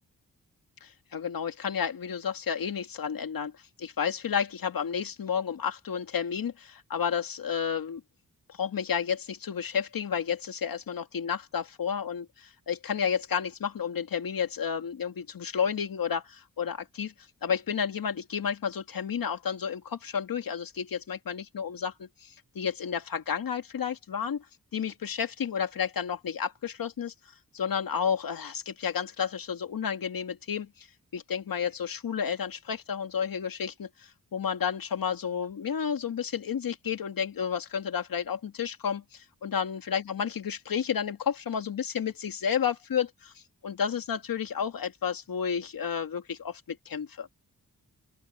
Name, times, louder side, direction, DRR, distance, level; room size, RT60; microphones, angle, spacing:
voice 1, 0.8-3.5 3.8-8.0 8.5-17.1 17.4-24.4 24.7-27.1 27.5-30.9 31.1-43.3 43.6-47.3, left 7 dB, 90° left, 2.3 m, -31 dB
open air
wide cardioid pair, 145°, 34 cm